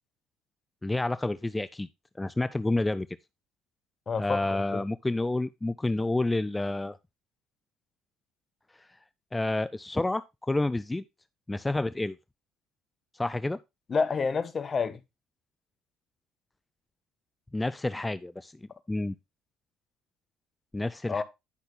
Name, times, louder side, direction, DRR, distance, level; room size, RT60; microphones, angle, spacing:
voice 1, 0.8-1.9 2.2-3.1 4.2-7.0 8.8-8.9 9.3-11.0 11.5-12.2 13.1-13.6 17.5-18.5 18.9-19.2 20.7-21.2, left 2 dB, 15° left, 0.4 m, -29 dB
voice 2, 4.1-4.8 13.9-15.0 21.1-21.2, left 5 dB, 35° left, 1.2 m, -29 dB
10.5 x 5.8 x 3.3 m
supercardioid pair, 80°, 0 cm